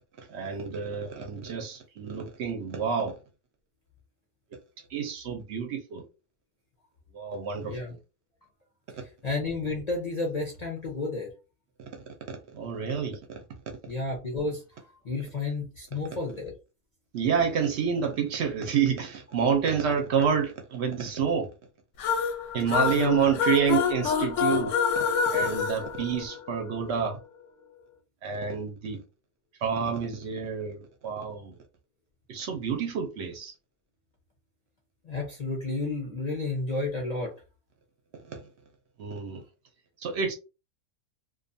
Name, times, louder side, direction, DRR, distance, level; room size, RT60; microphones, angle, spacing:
voice 1, 0.2-3.2 4.9-6.0 7.1-8.0 11.8-11.9 12.3-13.4 17.1-21.5 22.5-24.7 25.3-27.2 28.2-29.0 29.6-31.6 32.3-33.5 38.2-38.5 39.0-39.4 40.0-40.3, right 7 dB, 65° right, 0.7 m, -28 dB
voice 2, 9.2-11.3 13.9-16.5 22.7-23.2 35.0-37.3, left 3 dB, 55° left, 0.4 m, -31 dB
sound 1, 22.0-26.7, left 6 dB, 70° left, 0.8 m, -27 dB
2.5 x 2.3 x 2.6 m
omnidirectional pair, 1.5 m